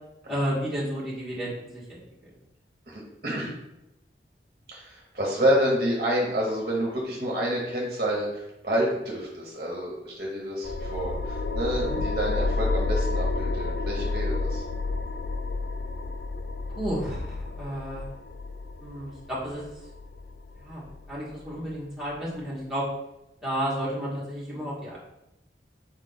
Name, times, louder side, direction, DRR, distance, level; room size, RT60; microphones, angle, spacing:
voice 1, 0.3-2.3 11.7-12.0 16.7-18.0 18.8-19.6 20.6-22.8 23.4-25.0, equal, 5° right, -9 dB, 1.4 m, -32 dB
voice 2, 2.9-3.5 4.7-14.6, equal, 45° right, -2 dB, 0.9 m, -28 dB
sound 1, 10.6-21.7, left 3 dB, 70° left, 0.4 m, -30 dB
4.3 x 3.1 x 3.9 m, 0.91 s
head